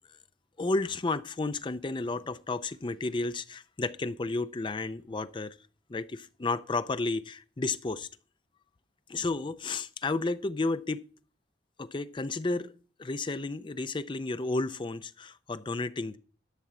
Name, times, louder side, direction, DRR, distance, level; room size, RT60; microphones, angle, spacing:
voice 1, 0.6-5.5 5.9-8.1 9.1-11.0 11.8-12.7 13.0-16.2, left 3 dB, 25° left, 0.5 m, -32 dB
11.5 x 4.4 x 7.5 m
head